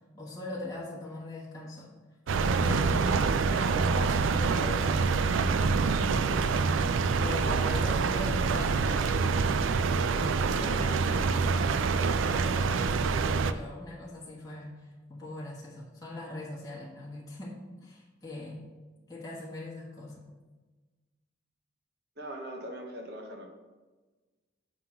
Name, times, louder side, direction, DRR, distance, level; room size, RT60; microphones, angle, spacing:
voice 1, 0.1-1.9 2.4-3.2 3.5-6.7 7.1-18.6 19.1-20.2, left 2 dB, 20° left, -6 dB, 1.3 m, -41 dB
sound 1, 2.3-13.5, right 4 dB, 85° right, 0.4 m, -26 dB
voice 2, 22.2-23.5, right 1 dB, 55° right, 2 dB, 1.1 m, -40 dB
7.3 x 3.7 x 5.7 m, 1.3 s
head